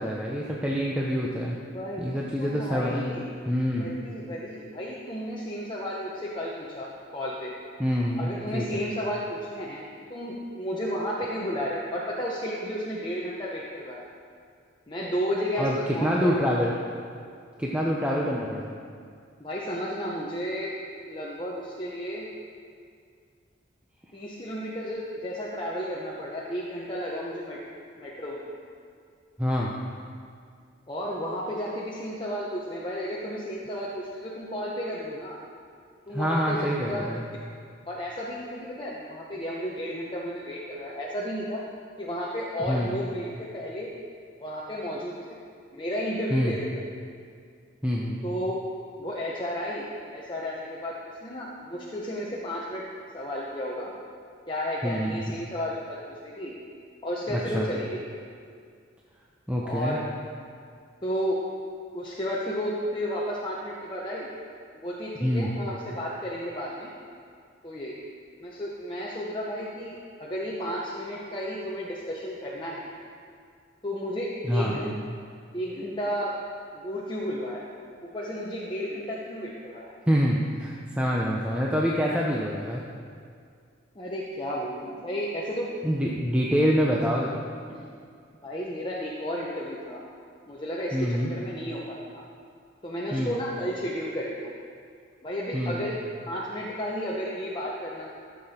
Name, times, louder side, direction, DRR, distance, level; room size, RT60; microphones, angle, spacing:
voice 1, 0.0-1.6 2.0-3.1 3.5-3.9 7.8-8.8 15.6-16.7 17.6-18.7 29.4-29.7 36.1-37.2 42.7-42.9 46.3-46.6 47.8-48.2 54.8-55.3 57.3-57.7 59.5-60.0 65.2-65.5 74.4-74.8 80.1-82.8 85.8-87.4 90.9-91.3 93.1-93.3 95.5-95.8, equal, 5° right, -4 dB, 0.7 m, -26 dB
voice 2, 1.7-3.3 3.8-7.6 8.2-14.0 14.9-16.5 19.4-20.7 21.1-22.3 24.1-27.6 28.0-28.5 30.9-35.4 36.1-37.1 37.9-41.6 42.0-43.9 44.4-45.4 45.7-46.7 48.2-48.6 49.0-49.8 50.1-50.9 51.2-52.8 53.1-53.9 54.5-56.6 57.0-57.9 59.6-60.0 61.0-61.4 61.9-64.3 64.7-66.9 67.6-68.0 68.4-72.9 73.8-74.9 75.5-76.3 76.7-77.7 78.0-79.9 83.9-85.7 87.7-87.8 88.4-90.0 90.5-92.2 92.8-94.5 95.2-96.0 96.3-98.1, equal, 25° left, -5 dB, 0.9 m, -33 dB
14.0 x 7.0 x 4.3 m, 2.2 s
head